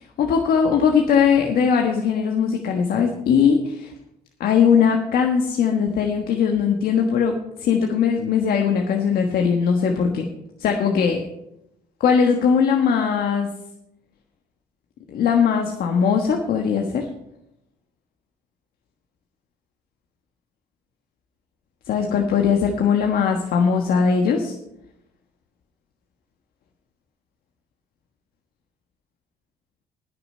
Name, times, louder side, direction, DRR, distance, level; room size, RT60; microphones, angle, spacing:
voice 1, 0.0-3.9 4.4-10.3 10.6-11.2 12.0-13.5 15.1-17.1 21.9-24.5, left 6 dB, 60° left, 3 dB, 1.4 m, -20 dB
19.0 x 6.8 x 5.5 m, 0.86 s
cardioid pair, 110°, 17 cm